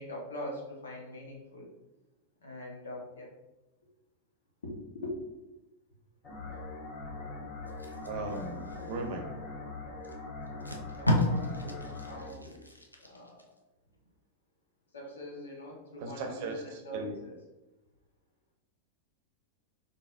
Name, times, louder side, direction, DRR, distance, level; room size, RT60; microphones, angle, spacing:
voice 1, 0.0-1.7 2.4-3.3 4.6-5.1 10.9-11.8 12.1-12.5 13.0-13.4 14.9-17.3, left 1 dB, 70° left, -2 dB, 1.1 m, -42 dB
sound 1, 6.2-12.3, left 3 dB, 30° left, 1.3 m, -42 dB
Packing tape duct tape, 7.7-9.3 10.0-10.1 10.5-13.4 13.9-14.1, left 1 dB, 85° left, 0.5 m, -33 dB
voice 2, 8.1-9.2 12.1-12.6 16.0-17.1, right 2 dB, 50° right, 3 dB, 0.7 m, -38 dB
4.0 x 3.6 x 2.5 m, 1.0 s
figure-of-eight pair, 90°, 0 cm